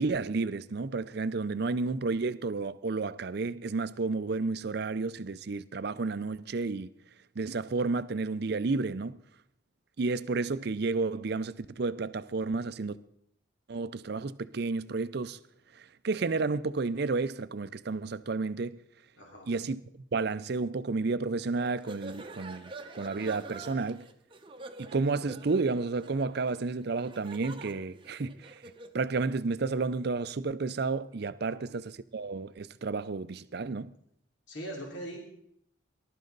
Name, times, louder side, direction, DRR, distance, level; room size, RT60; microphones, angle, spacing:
voice 1, 0.0-6.9 7.4-9.2 10.0-13.0 13.7-15.4 15.7-18.8 19.5-24.0 24.8-28.6 28.9-33.9, right 3 dB, 55° right, 0.5 m, -31 dB
voice 2, 19.2-19.5 31.5-31.8 34.5-35.2, right 1 dB, 70° left, 2.9 m, -41 dB
sound 1, 21.5-29.0, right 3 dB, 25° right, 0.8 m, -47 dB
20.0 x 12.0 x 4.0 m
head